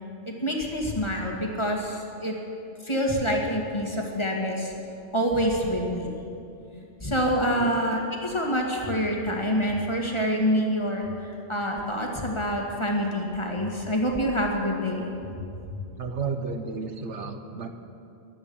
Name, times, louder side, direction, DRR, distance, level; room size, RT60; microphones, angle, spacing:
voice 1, 0.3-2.4 2.8-4.7 5.1-6.1 7.0-15.1 15.3-15.4, equal, 25° left, 0 dB, 2.0 m, -26 dB
voice 2, 16.0-17.7, right 5 dB, 80° right, 7 dB, 1.4 m, -32 dB
22.0 x 8.7 x 7.1 m, 2.6 s
omnidirectional pair, 1.2 m